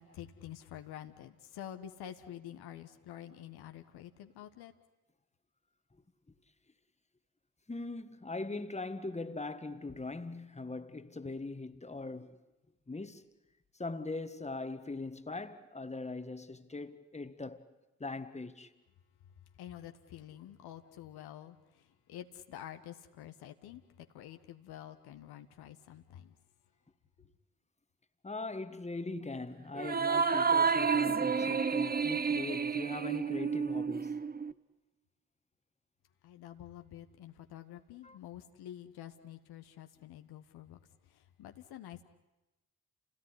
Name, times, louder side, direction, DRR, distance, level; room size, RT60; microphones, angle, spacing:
voice 1, 0.0-4.7 19.6-26.3 36.2-40.8 41.1-42.0, left 11 dB, 65° left, 1.5 m, -48 dB
voice 2, 7.7-12.4 12.9-13.2 13.8-17.7 18.0-18.7 28.2-34.2 38.0-38.2, left 3 dB, 15° left, 1.9 m, -41 dB
sound 1, 29.8-34.5, right 5 dB, 20° right, 1.1 m, -30 dB
30.0 x 17.5 x 10.0 m
hypercardioid pair, 40°, 41 cm